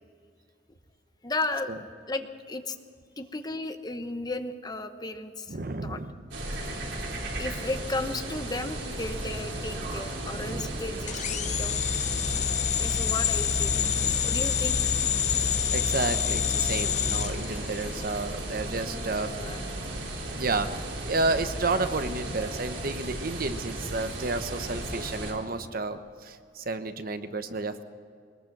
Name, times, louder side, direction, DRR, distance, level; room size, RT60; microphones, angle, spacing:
voice 1, 1.2-1.7 2.1-2.8 3.2-5.6 5.8-6.0 7.4-11.7 12.8-13.8 14.2-14.9 19.3-19.6, left 2 dB, 20° left, 8 dB, 1.0 m, -34 dB
voice 2, 5.5-6.2 10.3-10.7 13.6-14.3 15.7-19.4 20.4-20.7 21.0-27.8, right 3 dB, 55° right, 9 dB, 1.0 m, -31 dB
sound 1, 6.3-25.3, right 1 dB, 90° right, 3.9 m, -35 dB
sound 2, 11.1-18.2, left 8 dB, 40° left, 0.6 m, -27 dB
22.0 x 20.0 x 6.1 m, 2.2 s
head